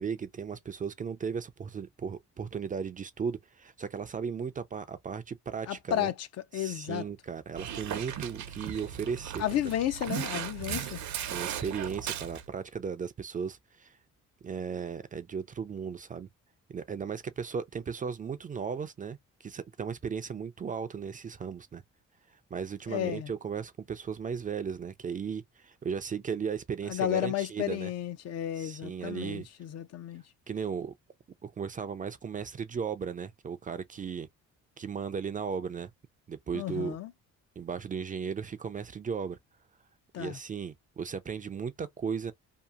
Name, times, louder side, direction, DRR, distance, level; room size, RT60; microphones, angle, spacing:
voice 1, 0.0-6.1 6.5-9.4 11.3-13.9 14.4-16.3 16.7-21.8 22.5-27.9 28.6-29.5 30.5-30.9 31.4-34.3 34.8-35.9 36.3-37.0 37.6-39.4 40.2-42.3, right 6 dB, 30° right, 0.3 m, -36 dB
voice 2, 5.7-7.0 9.4-11.0 22.9-23.3 26.9-30.2 36.5-37.1 40.1-40.4, left 11 dB, 55° left, 0.4 m, -32 dB
Dog, 7.5-12.4, right 9 dB, 65° right, 0.7 m, -37 dB
2.8 x 2.4 x 2.2 m
cardioid pair, 90°, 30 cm